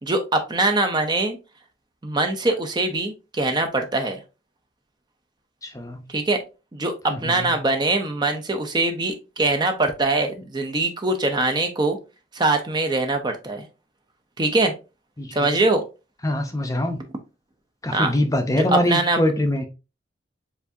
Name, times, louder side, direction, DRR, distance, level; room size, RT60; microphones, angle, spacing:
voice 1, 0.0-1.4 2.0-4.2 6.1-6.4 6.7-6.9 7.2-12.0 12.3-13.6 14.4-14.7 15.3-15.8 17.9-18.1 18.7-19.2, right 2 dB, 25° right, 0.6 m, -22 dB
voice 2, 5.6-6.0 7.1-7.3 15.2-15.6 16.2-17.0 17.8-19.7, left 1 dB, 15° left, 0.6 m, -23 dB
6.9 x 2.7 x 2.6 m
head